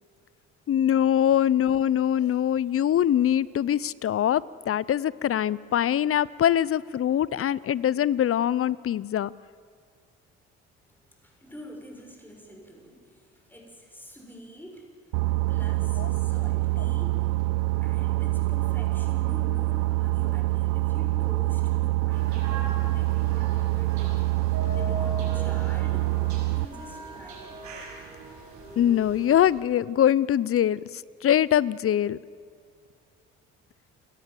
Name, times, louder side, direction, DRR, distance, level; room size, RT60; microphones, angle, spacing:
voice 1, 0.7-9.3 16.0-16.1 28.8-32.2, left 10 dB, 50° left, 21 dB, 0.7 m, -23 dB
voice 2, 10.8-15.1 15.5-17.3 17.8-24.2 24.7-26.1 26.5-27.6, equal, 5° left, 1 dB, 6.9 m, -46 dB
Boat Water vehicle, 15.1-26.7, right 20 dB, 90° right, 0.5 m, -25 dB
sound 1, 22.1-29.5, right 2 dB, 70° right, 6.5 m, -40 dB
30.0 x 13.5 x 7.8 m, 2.2 s
supercardioid pair, 65°, 30 cm